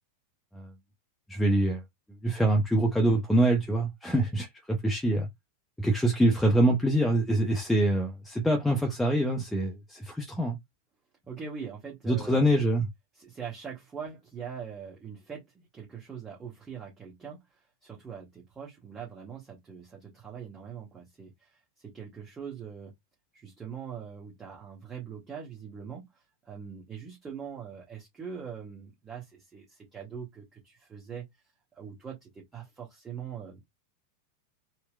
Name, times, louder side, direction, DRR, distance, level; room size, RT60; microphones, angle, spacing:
voice 1, 1.3-1.8 2.2-5.3 5.8-10.6 12.1-12.9, right 1 dB, 5° left, 0.7 m, -25 dB
voice 2, 11.3-12.5 13.2-22.9 23.3-31.3 31.7-33.6, right 7 dB, 20° right, 1.1 m, -42 dB
4.3 x 2.1 x 2.3 m
figure-of-eight pair, 90°, 0 cm